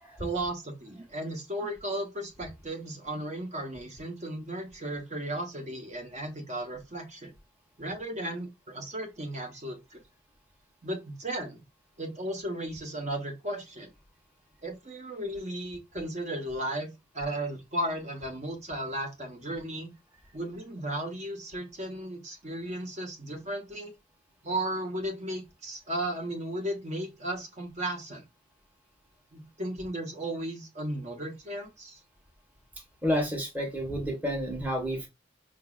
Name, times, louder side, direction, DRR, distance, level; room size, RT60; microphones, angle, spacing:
voice 1, 0.2-7.3 7.8-10.0 10.8-11.6 12.0-13.9 14.6-16.9 17.1-19.9 20.3-23.9 24.4-28.2 29.3-32.0, right 1 dB, 40° right, 1.0 m, -35 dB
voice 2, 33.0-35.1, equal, 10° right, 1.0 m, -30 dB
5.0 x 2.6 x 2.3 m
head